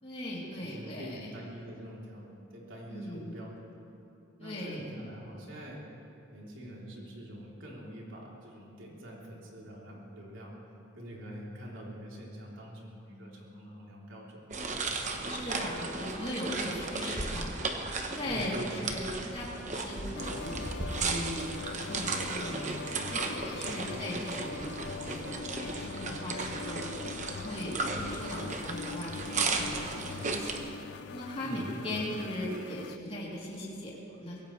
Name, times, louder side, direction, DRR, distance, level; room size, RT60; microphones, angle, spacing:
voice 1, 0.0-1.3 2.9-3.4 4.4-4.9 15.3-17.5 18.1-20.5 20.9-24.8 25.0-26.9 27.3-30.6 31.1-34.4, left 1 dB, 30° left, -6 dB, 3.3 m, -39 dB
voice 2, 0.6-3.7 4.4-5.8 6.3-10.5 11.0-14.5 18.2-18.9 23.6-24.0 31.4-32.1, equal, 75° right, -4 dB, 3.5 m, -45 dB
sound 1, 14.5-30.6, right 3 dB, 35° right, 1.0 m, -35 dB
sound 2, 20.2-33.0, left 5 dB, 55° left, 0.3 m, -42 dB
24.5 x 17.0 x 3.3 m, 2.9 s
head